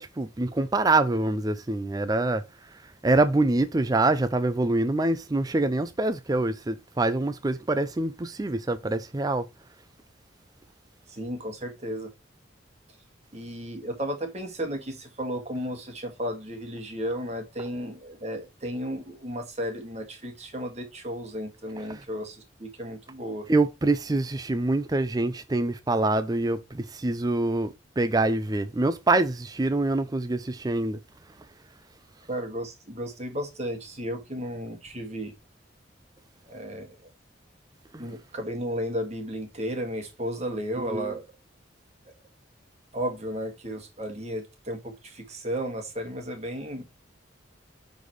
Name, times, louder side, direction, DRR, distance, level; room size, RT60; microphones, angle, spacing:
voice 1, 0.0-2.4 3.0-9.5 21.9-22.0 23.5-31.0 37.9-38.1 40.8-41.1, right 2 dB, 20° right, 0.4 m, -25 dB
voice 2, 11.1-12.1 13.3-23.4 32.3-35.3 36.5-37.1 38.0-41.2 42.9-46.8, equal, 35° right, 2.0 m, -34 dB
9.9 x 4.1 x 3.1 m
head